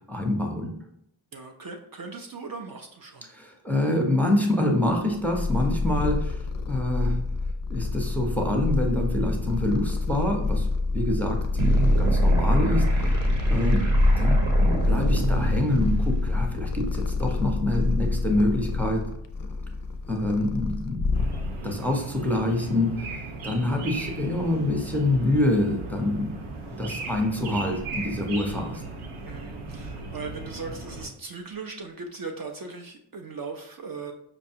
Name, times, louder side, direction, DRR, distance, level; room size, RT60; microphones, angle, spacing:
voice 1, 0.1-0.7 3.3-6.4 6.7-7.2 7.7-10.7 10.9-13.2 13.5-19.0 20.1-21.2 21.6-26.3 26.8-28.8, left 1 dB, 5° left, 2 dB, 0.6 m, -26 dB
voice 2, 1.3-3.3 13.5-13.7 29.3-34.1, right 4 dB, 45° right, 3 dB, 0.5 m, -38 dB
Purr, 4.9-21.8, left 3 dB, 45° left, 0.4 m, -28 dB
sound 1, 11.6-16.6, equal, 65° right, 1.1 m, -23 dB
sound 2, 21.1-31.1, right 3 dB, 90° right, 0.7 m, -37 dB
5.0 x 2.2 x 2.7 m, 0.72 s
cardioid pair, 60°, 49 cm